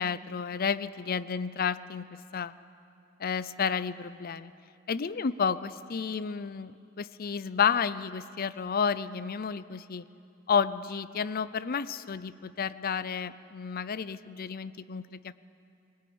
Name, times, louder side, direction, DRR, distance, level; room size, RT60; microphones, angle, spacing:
voice 1, 0.0-2.1 2.3-2.5 3.2-4.5 4.9-10.0 10.5-15.4, left 6 dB, 45° left, 15 dB, 0.5 m, -31 dB
21.0 x 19.0 x 8.6 m, 2.6 s
head